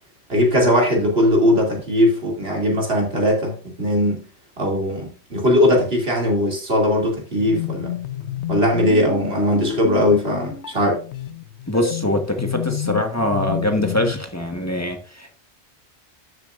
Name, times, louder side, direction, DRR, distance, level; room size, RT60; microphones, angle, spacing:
voice 1, 0.3-4.2 4.6-7.9 8.5-11.0, left 1 dB, 55° right, 2.9 m, -19 dB
sound 1, 7.4-14.2, left 10 dB, 70° left, 1.0 m, -29 dB
voice 2, 11.7-15.3, left 1 dB, 15° left, 1.2 m, -23 dB
12.0 x 7.4 x 2.5 m
omnidirectional pair, 1.2 m